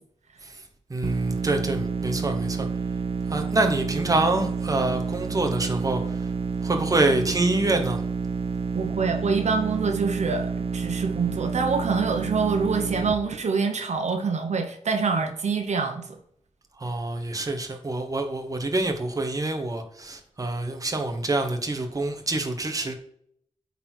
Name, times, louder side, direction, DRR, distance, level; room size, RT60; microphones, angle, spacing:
voice 1, 0.9-2.7 3.3-6.3 6.6-8.0 16.8-23.0, right 2 dB, 30° right, 4 dB, 1.1 m, -26 dB
sound 1, 1.0-13.1, right 5 dB, 55° right, 0.6 m, -29 dB
voice 2, 8.7-16.1, right 5 dB, 75° right, 5 dB, 1.0 m, -26 dB
8.7 x 4.1 x 4.5 m, 0.68 s
wide cardioid pair, 115°, 12 cm